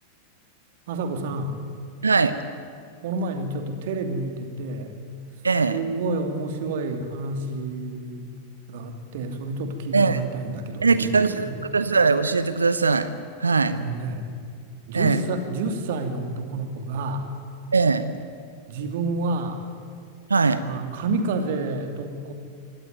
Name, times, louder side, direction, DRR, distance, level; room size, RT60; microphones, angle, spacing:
voice 1, 0.9-1.6 3.0-5.0 5.7-8.3 8.7-11.6 13.7-14.3 14.9-17.3 18.7-19.6 20.6-22.3, right 3 dB, 55° right, 6 dB, 2.8 m, -29 dB
voice 2, 2.0-2.3 5.4-5.8 9.9-10.2 10.8-13.1 13.4-13.8 14.9-15.2 17.7-18.1 20.3-20.6, right 4 dB, 75° right, 13 dB, 0.9 m, -20 dB
25.5 x 18.0 x 9.3 m, 2.2 s
figure-of-eight pair, 90°, 0 cm